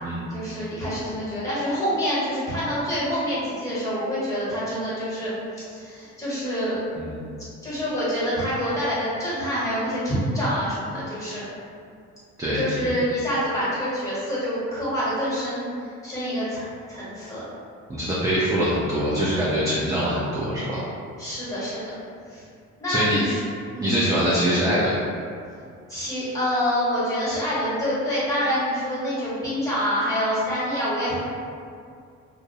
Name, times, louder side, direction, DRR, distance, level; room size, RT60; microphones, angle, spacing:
voice 1, 0.3-6.8 7.6-11.4 12.5-15.7 16.0-17.4 21.2-21.8 22.3-22.5 22.8-23.4 23.7-24.0 25.9-31.2, equal, 10° left, -10 dB, 1.2 m, -26 dB
voice 2, 17.9-20.9 22.9-23.2 23.8-25.0, equal, 10° right, -8 dB, 0.4 m, -23 dB
2.4 x 2.0 x 2.6 m, 2.3 s
cardioid pair, 90°, 30 cm